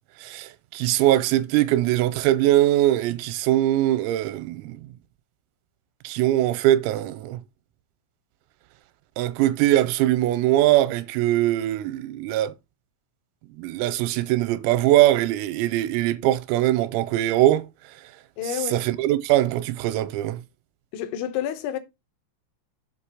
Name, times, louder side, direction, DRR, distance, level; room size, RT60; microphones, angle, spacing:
voice 1, 0.2-4.8 6.0-7.4 9.2-12.5 13.6-17.7 18.7-20.4, right 14 dB, 85° right, 3.3 m, -21 dB
voice 2, 18.4-18.8 20.9-21.8, left 10 dB, 80° left, 2.8 m, -29 dB
8.2 x 2.9 x 6.1 m
omnidirectional pair, 6.0 m